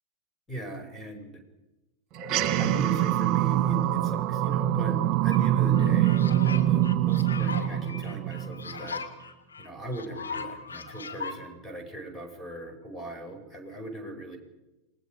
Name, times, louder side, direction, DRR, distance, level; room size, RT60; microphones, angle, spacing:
voice 1, 0.5-1.4 2.6-9.0 9.6-14.4, right 2 dB, 5° left, 5 dB, 5.5 m, -39 dB
sound 1, 2.2-8.9, right 12 dB, 35° right, 1.7 m, -24 dB
sound 2, 5.3-5.4 5.7-11.4, left 5 dB, 75° left, 2.3 m, -38 dB
28.0 x 20.5 x 5.1 m, 1.0 s
figure-of-eight pair, 90°, 0 cm